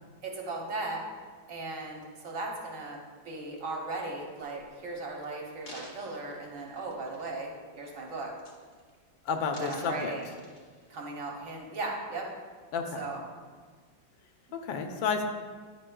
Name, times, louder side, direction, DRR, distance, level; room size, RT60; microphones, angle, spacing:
voice 1, 0.2-1.0 1.5-8.3 9.6-10.3 10.9-12.3 13.0-13.2, right 2 dB, 55° right, -1 dB, 1.1 m, -37 dB
sound 1, 4.8-4.9 5.4-7.5 7.9-8.1 8.4-9.0 9.3-11.0 11.6-11.7, left 1 dB, 30° left, 1.0 m, -51 dB
voice 2, 9.2-10.1 12.7-13.0 14.5-15.2, left 5 dB, 80° left, 5 dB, 1.4 m, -31 dB
9.8 x 5.4 x 2.2 m, 1.5 s
omnidirectional pair, 2.1 m